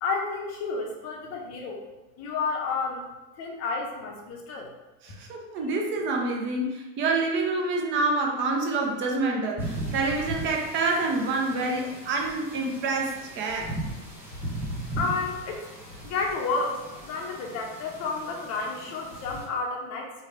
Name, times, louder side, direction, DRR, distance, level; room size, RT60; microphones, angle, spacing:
voice 1, 0.0-1.8 2.2-3.0 3.4-4.7 15.0-15.6 16.0-20.1, left 4 dB, 35° left, 0 dB, 0.7 m, -31 dB
voice 2, 5.0-13.7, right 3 dB, 25° right, 1 dB, 0.4 m, -27 dB
sound 1, 9.6-19.5, right 1 dB, 5° right, 1.0 m, -38 dB
3.1 x 2.2 x 3.5 m, 1.1 s
hypercardioid pair, 115°, 50 cm